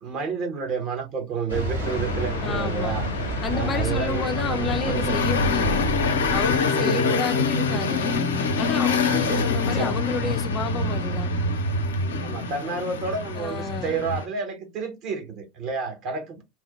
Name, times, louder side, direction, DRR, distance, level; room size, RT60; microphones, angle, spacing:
voice 1, 0.0-3.1 3.5-5.2 6.6-7.2 9.1-10.0 12.1-16.4, right 5 dB, 45° right, 1.1 m, -30 dB
sound 1, 1.5-6.6, right 1 dB, 85° right, 1.5 m, -29 dB
sound 2, 1.8-14.3, left 3 dB, 75° left, 0.5 m, -26 dB
voice 2, 2.4-3.0 3.4-5.9 6.3-8.1 8.6-11.3 13.4-14.1, left 5 dB, 30° left, 0.6 m, -31 dB
3.2 x 2.1 x 3.0 m
figure-of-eight pair, 80°, 0 cm